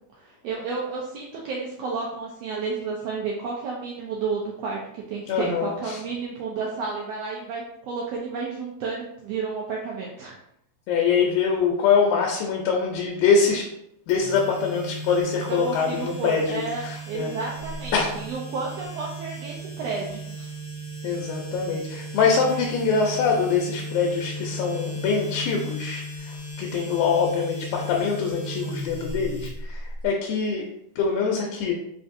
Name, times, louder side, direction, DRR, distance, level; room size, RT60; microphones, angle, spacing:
voice 1, 0.2-10.3 15.5-20.5, right 4 dB, 80° right, -2 dB, 1.5 m, -31 dB
voice 2, 5.3-6.0 10.9-13.7 14.1-17.3 17.9-18.2 21.0-30.7 31.0-31.7, left 5 dB, 85° left, 0 dB, 2.0 m, -24 dB
sound 1, 14.1-30.1, equal, 55° left, 1.5 m, -35 dB
4.8 x 2.6 x 2.5 m, 0.78 s
omnidirectional pair, 3.4 m